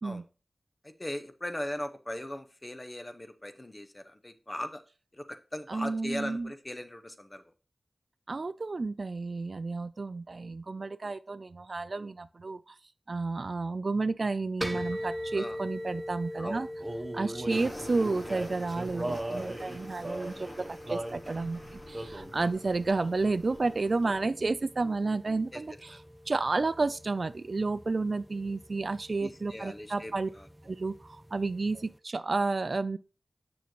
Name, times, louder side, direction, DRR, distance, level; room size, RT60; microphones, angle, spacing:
voice 1, 0.8-4.8 5.2-7.4 14.9-15.0 15.3-15.6 16.4-16.7 17.1-17.4 22.4-22.5 25.5-25.6 25.9-26.0 29.2-30.5 31.7-31.8, left 1 dB, 30° left, 0.8 m, -39 dB
voice 2, 5.7-6.5 8.3-12.7 13.1-16.7 17.1-30.3 30.6-33.0, right 3 dB, 60° right, 0.3 m, -31 dB
sound 1, 14.6-32.0, equal, 15° right, 0.7 m, -43 dB
Male singing, 16.8-21.2 21.9-22.4 23.0-23.3 23.5-24.5, right 1 dB, 30° right, 1.4 m, -38 dB
sound 2, 17.5-24.2, left 1 dB, 50° left, 3.9 m, -46 dB
6.9 x 6.3 x 3.0 m
cardioid pair, 40°, 0 cm